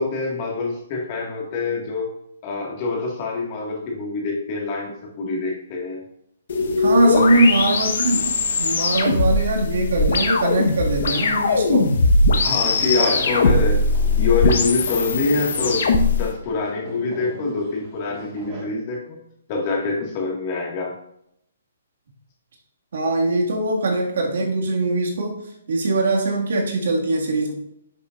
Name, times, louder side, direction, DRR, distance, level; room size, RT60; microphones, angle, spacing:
voice 1, 0.0-2.1 2.4-6.0 7.1-7.4 12.4-13.9 14.2-15.9 16.2-19.2 19.5-20.9, left 3 dB, 30° left, -1 dB, 1.9 m, -25 dB
sound 1, 6.5-16.2, left 3 dB, 60° left, 1.3 m, -20 dB
voice 2, 6.8-11.9 22.9-25.4 25.7-27.5, right 2 dB, 70° right, 0 dB, 2.1 m, -21 dB
sound 2, 12.6-18.7, right 1 dB, 20° right, 1.8 m, -36 dB
10.5 x 6.8 x 2.6 m, 0.76 s
hypercardioid pair, 165°, 0 cm